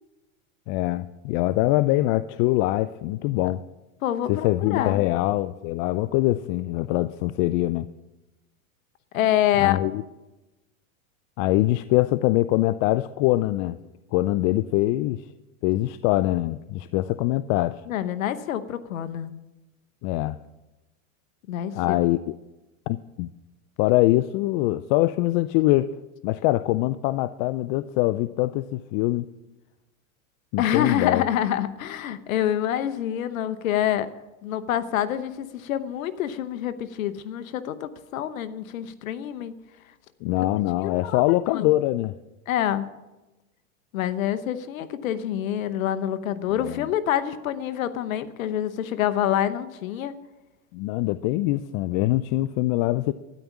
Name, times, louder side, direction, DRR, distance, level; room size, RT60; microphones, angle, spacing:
voice 1, 0.7-3.6 4.3-7.9 9.6-10.0 11.4-13.8 14.1-15.2 15.6-17.8 20.0-20.4 21.7-22.3 22.9-23.3 23.8-25.9 26.2-29.3 30.5-31.2 40.2-42.1 46.6-46.9 50.7-53.1, left 17 dB, 45° left, 15 dB, 0.5 m, -23 dB
voice 2, 4.0-5.0 9.1-9.8 17.9-19.3 21.5-22.0 30.6-34.1 34.4-39.6 40.8-41.2 41.5-41.7 42.5-42.9 43.9-50.1, left 11 dB, 85° left, 13 dB, 1.0 m, -26 dB
13.0 x 10.0 x 7.2 m, 1.1 s
supercardioid pair, 120°, 40 cm